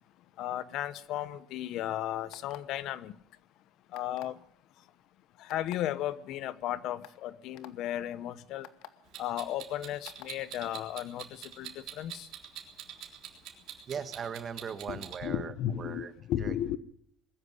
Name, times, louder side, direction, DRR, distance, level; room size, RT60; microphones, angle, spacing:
voice 1, 0.4-3.2 3.9-4.4 4.8-4.9 5.4-8.7 9.2-12.3 14.9-16.8, left 12 dB, 55° left, 0.9 m, -35 dB
sound 1, 2.3-2.8 3.9-4.4 5.5-5.8 6.5-6.6 7.0-7.2 7.6-7.7 8.6-8.9 10.1-10.3, left 14 dB, 85° left, 1.6 m, -47 dB
Clock, 9.1-15.2, right 11 dB, 55° right, 3.7 m, -44 dB
voice 2, 13.9-16.1 16.4-16.8, right 7 dB, 30° right, 1.6 m, -39 dB
21.5 x 13.5 x 9.7 m
cardioid pair, 170°, 0 cm